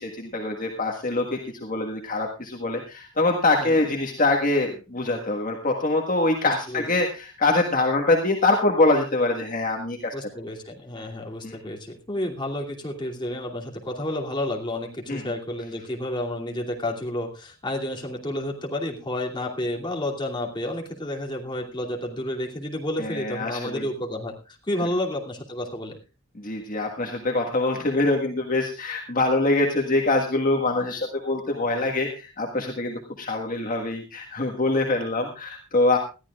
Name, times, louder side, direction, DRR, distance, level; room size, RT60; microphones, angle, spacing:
voice 1, 0.0-10.1 11.4-11.6 15.1-15.2 23.0-23.8 26.4-36.0, left 2 dB, 40° left, 1 dB, 1.6 m, -24 dB
voice 2, 6.4-6.9 10.1-26.0, left 1 dB, 25° left, -1 dB, 2.7 m, -31 dB
20.5 x 14.0 x 2.4 m, 0.32 s
head